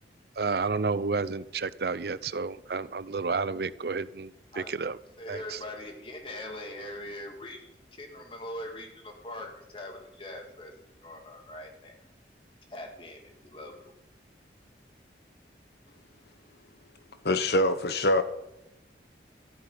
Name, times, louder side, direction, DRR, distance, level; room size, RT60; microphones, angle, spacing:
voice 1, 0.4-5.0 5.3-5.6, right 4 dB, 60° right, 0.5 m, -31 dB
voice 2, 5.2-10.7 11.0-12.0 12.7-13.9, left 1 dB, 30° left, 2.2 m, -42 dB
voice 3, 17.2-18.2, left 1 dB, 65° left, 1.1 m, -24 dB
14.0 x 7.6 x 8.8 m
head